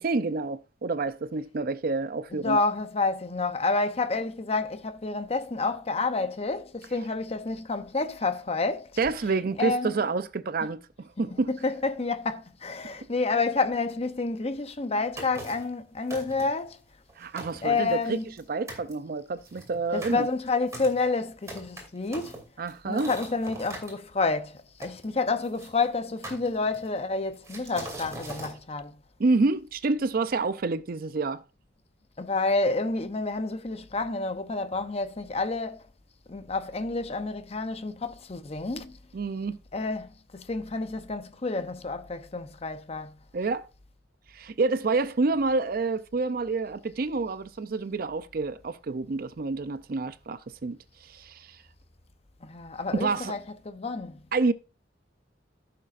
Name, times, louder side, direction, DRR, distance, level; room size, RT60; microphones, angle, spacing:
voice 1, 0.0-2.6 9.0-11.5 17.2-18.2 18.5-20.3 22.6-23.1 29.2-31.4 39.1-39.6 43.3-43.6 44.3-50.8 51.0-51.5 53.0-53.3 54.3-54.5, right 3 dB, 50° right, 0.5 m, -28 dB
voice 2, 2.3-8.9 9.6-9.9 11.2-16.8 17.6-18.2 19.9-22.4 22.9-28.9 32.2-35.8 36.3-39.0 39.7-43.1 52.4-54.2, left 3 dB, 35° left, 0.7 m, -29 dB
sound 1, 15.2-15.7 16.1-16.6 17.1-17.2 17.4-18.4 18.7-18.9 19.4-23.9 24.8-25.7 26.2-27.0 27.4-28.5, right 1 dB, 15° right, 2.7 m, -41 dB
15.0 x 6.6 x 2.5 m
head